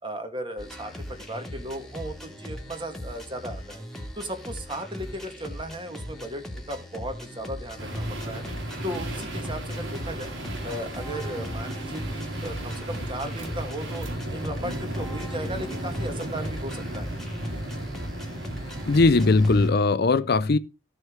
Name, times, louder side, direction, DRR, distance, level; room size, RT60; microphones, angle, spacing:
voice 1, 0.0-3.8 4.2-8.4 8.8-10.3 10.6-17.1, right 1 dB, 25° right, 2.1 m, -36 dB
sound 1, 0.6-19.7, equal, ahead, 2.1 m, -39 dB
sound 2, 7.8-19.7, right 1 dB, 75° right, 3.4 m, -34 dB
voice 2, 18.9-20.6, left 3 dB, 55° left, 0.6 m, -19 dB
14.5 x 6.4 x 4.6 m
head